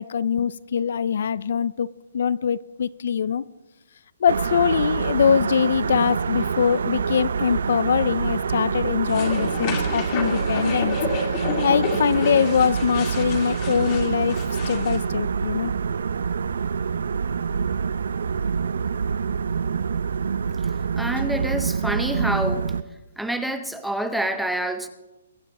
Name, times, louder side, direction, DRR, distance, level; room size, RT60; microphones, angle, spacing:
voice 1, 0.0-1.9 2.1-3.4 4.2-11.0 11.6-14.4 14.6-15.7, left 7 dB, 50° left, 0.3 m, -23 dB
sound 1, 4.3-22.8, right 6 dB, 70° right, 0.5 m, -26 dB
sound 2, 9.1-15.0, left 4 dB, 20° left, 1.9 m, -30 dB
voice 2, 21.0-22.7 23.2-24.9, right 1 dB, ahead, 0.6 m, -27 dB
22.0 x 9.2 x 4.1 m
hypercardioid pair, 175°, 0 cm